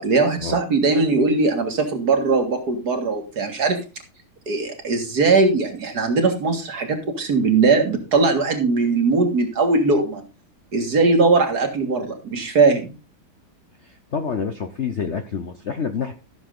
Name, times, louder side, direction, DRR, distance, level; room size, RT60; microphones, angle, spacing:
voice 1, 0.0-3.8 4.5-10.2 10.7-12.9, right 3 dB, 50° right, 5 dB, 2.3 m, -20 dB
voice 2, 13.8-16.1, left 6 dB, 60° left, 7 dB, 0.7 m, -28 dB
14.0 x 6.9 x 3.8 m, 0.30 s
omnidirectional pair, 2.3 m